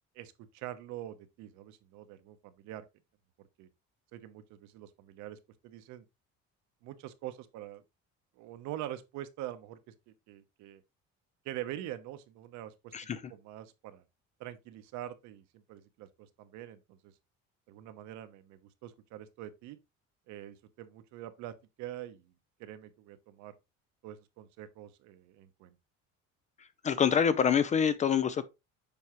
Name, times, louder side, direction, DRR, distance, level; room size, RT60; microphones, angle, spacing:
voice 1, 0.1-2.8 3.4-3.7 4.1-6.0 6.8-7.8 8.4-9.9 10.3-10.8 11.4-12.9 13.3-14.0 14.4-17.1 17.7-19.8 20.3-22.3 22.6-23.5 24.0-25.7, right 13 dB, 75° right, 0.9 m, -44 dB
voice 2, 26.8-28.4, left 7 dB, 25° left, 0.3 m, -26 dB
7.0 x 4.7 x 3.0 m
cardioid pair, 160°, 29 cm